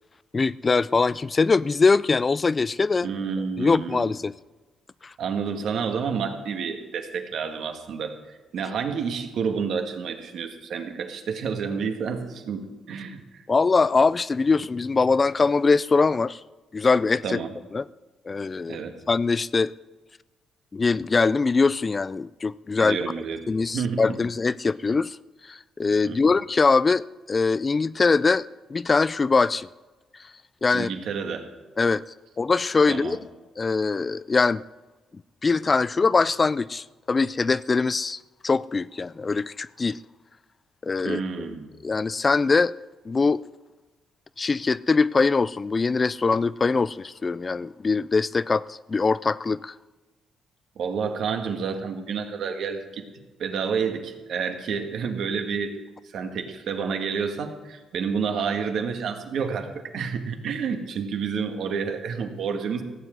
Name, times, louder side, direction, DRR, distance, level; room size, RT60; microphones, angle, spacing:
voice 1, 0.3-3.1 3.6-4.3 5.0-5.1 13.5-16.4 16.7-17.4 17.7-17.9 18.3-19.7 20.7-23.0 23.5-25.2 25.4-29.7 30.6-30.9 31.8-32.0 32.4-33.2 33.6-34.6 35.4-40.0 40.8-41.5 41.8-42.7 43.1-43.4 44.4-49.7, left 4 dB, 30° left, 0.3 m, -22 dB
voice 2, 3.0-4.0 5.2-13.4 17.2-17.5 18.7-19.0 22.8-23.4 23.7-24.1 26.0-26.3 30.7-31.5 32.9-33.2 41.0-41.7 50.7-53.0 53.4-55.7 56.0-62.8, right 6 dB, 70° right, 1.7 m, -29 dB
16.0 x 7.8 x 7.9 m
cardioid pair, 90°, 0 cm